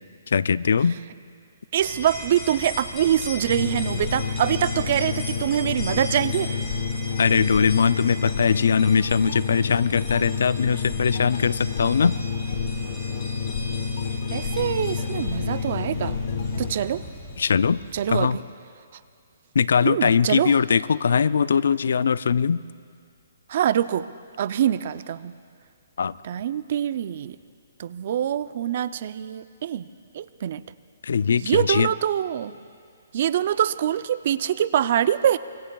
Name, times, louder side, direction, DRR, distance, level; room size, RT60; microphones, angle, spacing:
voice 1, 0.3-1.0 7.2-12.2 17.4-17.8 18.1-18.4 19.5-22.6 26.0-26.1 31.0-31.9, left 6 dB, 70° left, 17 dB, 0.4 m, -21 dB
voice 2, 1.7-6.5 14.3-16.2 16.6-17.1 17.9-18.4 19.8-20.6 23.5-24.1 24.4-25.3 26.2-27.4 27.8-29.9 30.1-30.6 31.4-32.6 33.1-35.4, right 10 dB, 45° right, 15 dB, 0.4 m, -24 dB
sound 1, 1.8-18.3, left 1 dB, 20° left, 3.4 m, -38 dB
sound 2, 3.5-16.7, left 5 dB, 50° left, 1.0 m, -29 dB
25.0 x 22.5 x 2.3 m, 2.3 s
hypercardioid pair, 165°, 0 cm